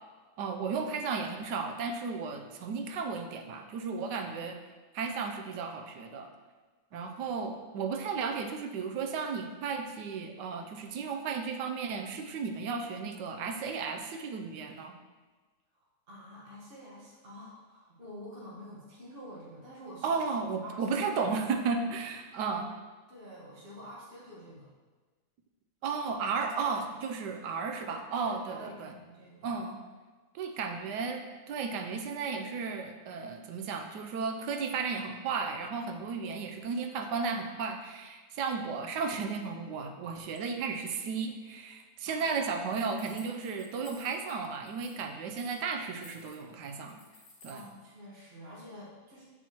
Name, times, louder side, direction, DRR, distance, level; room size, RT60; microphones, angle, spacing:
voice 1, 0.4-4.6 4.9-6.3 6.9-14.9 20.0-22.7 25.8-28.9 29.4-29.8 30.3-47.0 47.4-47.6, right 5 dB, 75° right, 5 dB, 1.2 m, -34 dB
voice 2, 6.9-7.5 15.7-20.2 20.6-21.0 23.1-24.7 28.2-29.5 42.0-42.3 47.5-49.2, equal, 35° right, -7 dB, 1.5 m, -48 dB
sound 1, 42.7-44.3 44.7-45.0 45.3-47.7, left 3 dB, 65° left, 1.7 m, -55 dB
7.0 x 6.2 x 2.9 m, 1.3 s
omnidirectional pair, 1.9 m